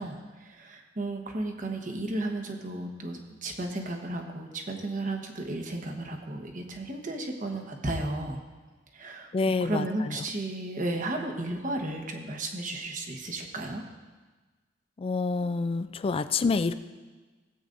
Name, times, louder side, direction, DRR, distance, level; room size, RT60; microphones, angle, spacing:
voice 1, 0.0-8.4 8.9-9.3 9.6-13.8, right 2 dB, 45° right, 3 dB, 1.1 m, -34 dB
voice 2, 9.3-10.2 15.0-16.7, left 4 dB, 30° left, 13 dB, 0.3 m, -27 dB
17.0 x 8.0 x 2.6 m, 1.3 s
head